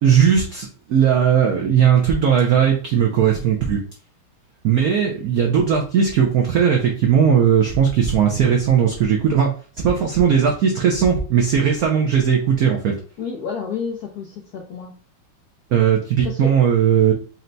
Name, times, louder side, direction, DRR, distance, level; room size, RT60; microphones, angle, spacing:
voice 1, 0.0-3.8 4.6-9.5 9.8-13.0 15.7-17.1, right 8 dB, 90° right, 0 dB, 0.8 m, -17 dB
voice 2, 13.2-14.9 16.2-16.5, left 6 dB, 75° left, 0 dB, 0.8 m, -30 dB
4.3 x 2.2 x 3.9 m, 0.41 s
omnidirectional pair, 2.3 m